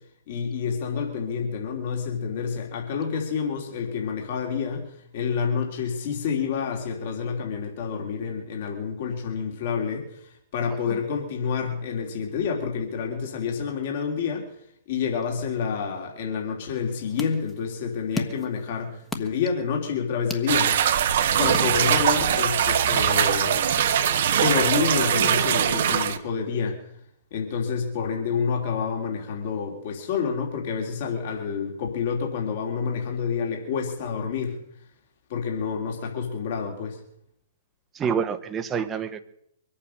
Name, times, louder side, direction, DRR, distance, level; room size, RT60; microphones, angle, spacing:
voice 1, 0.3-14.5 14.9-20.7 21.2-23.7 24.3-26.8 27.3-34.6 35.3-37.0, left 6 dB, 55° left, 1 dB, 3.2 m, -28 dB
sound 1, 16.7-22.3, left 3 dB, 10° left, 1.5 m, -38 dB
sound 2, 20.5-26.2, right 9 dB, 60° right, 1.1 m, -22 dB
voice 2, 37.9-39.2, right 7 dB, 20° right, 9 dB, 1.1 m, -27 dB
23.5 x 8.8 x 6.5 m, 0.75 s
hypercardioid pair, 125°, 0 cm